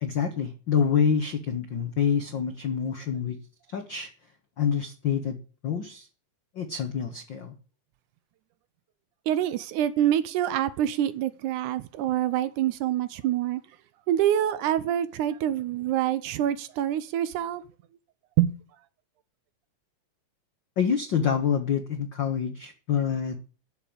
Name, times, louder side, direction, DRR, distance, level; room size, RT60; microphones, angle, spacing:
voice 1, 0.0-3.4 3.7-4.1 4.6-5.4 5.6-6.1 6.5-7.5 20.8-23.4, left 7 dB, 85° left, 1.0 m, -27 dB
voice 2, 9.3-13.6 14.1-17.6 18.4-18.5, right 11 dB, 75° right, 2.0 m, -26 dB
11.5 x 6.9 x 8.6 m
omnidirectional pair, 3.9 m